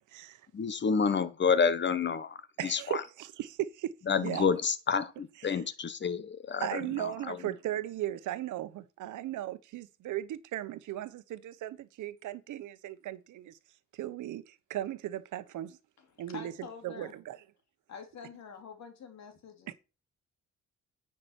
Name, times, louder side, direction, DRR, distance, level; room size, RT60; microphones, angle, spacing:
voice 1, 0.5-2.4 2.6-2.8 4.1-7.4, left 6 dB, 35° left, 1.2 m, -29 dB
voice 2, 2.6-4.4 5.4-5.6 6.6-13.6 13.9-15.8 16.2-16.5 16.8-17.4 19.7-19.8, right 13 dB, 80° right, 1.1 m, -37 dB
voice 3, 16.0-17.1 17.9-19.7, left 6 dB, 65° left, 2.8 m, -47 dB
9.7 x 5.9 x 4.5 m
cardioid pair, 90°, 30 cm